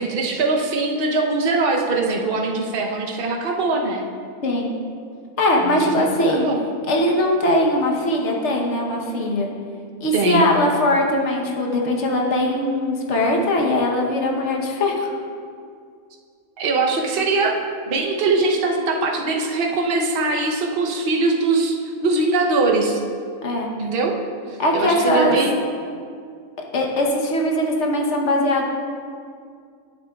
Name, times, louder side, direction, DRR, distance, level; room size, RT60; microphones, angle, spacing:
voice 1, 0.0-4.1 5.6-6.6 10.1-10.5 16.6-17.6 17.9-23.0 23.8-24.1 24.5-25.6, right 3 dB, 50° right, 1 dB, 0.9 m, -22 dB
voice 2, 5.4-6.5 6.9-9.5 10.0-15.1 23.4-23.7 24.6-25.4 26.7-28.7, left 1 dB, 60° left, 0 dB, 1.2 m, -20 dB
12.0 x 6.6 x 2.3 m, 2.2 s
omnidirectional pair, 1.4 m